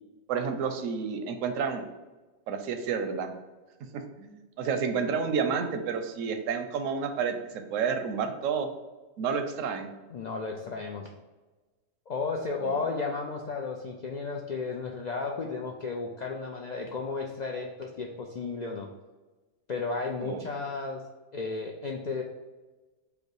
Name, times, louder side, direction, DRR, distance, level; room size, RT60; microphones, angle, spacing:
voice 1, 0.3-1.8 2.5-3.3 3.9-8.7 9.2-9.9 12.6-12.9 20.2-20.4, right 6 dB, 85° right, 6 dB, 1.0 m, -30 dB
voice 2, 10.1-11.1 12.1-18.9 19.7-21.0 21.3-22.2, left 4 dB, 80° left, 0 dB, 0.3 m, -33 dB
5.1 x 2.1 x 4.6 m, 1.2 s
omnidirectional pair, 1.3 m